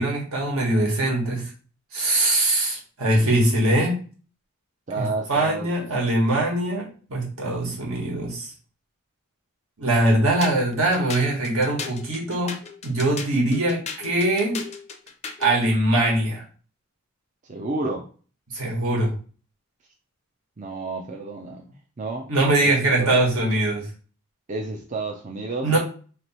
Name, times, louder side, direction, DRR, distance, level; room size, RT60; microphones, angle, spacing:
voice 1, 0.0-1.5 1.9-4.0 5.0-8.5 9.8-12.5 12.8-14.6 15.4-16.4 18.5-19.1 22.3-23.9 25.6-25.8, right 1 dB, 70° right, -2 dB, 1.6 m, -22 dB
voice 2, 4.9-5.9 17.4-18.1 20.6-22.3 22.6-23.2 24.5-25.7, right 3 dB, 35° right, 1 dB, 0.5 m, -31 dB
sound 1, 10.4-15.6, left 5 dB, 30° left, 0.5 m, -36 dB
3.1 x 2.9 x 4.3 m, 0.40 s
head